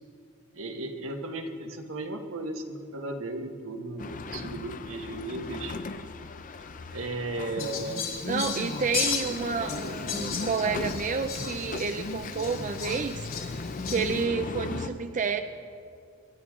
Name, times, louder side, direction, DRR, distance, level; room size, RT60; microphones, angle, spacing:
voice 1, 0.5-5.8 6.9-8.1, right 2 dB, 80° right, 4 dB, 1.4 m, -35 dB
sound 1, 4.0-14.9, left 3 dB, 40° left, 0.6 m, -36 dB
Fowl, 7.6-14.2, left 7 dB, 75° left, 3.1 m, -36 dB
voice 2, 8.2-13.2 13.9-15.4, right 5 dB, 40° right, 8 dB, 0.5 m, -30 dB
26.0 x 11.5 x 3.7 m, 2.4 s
head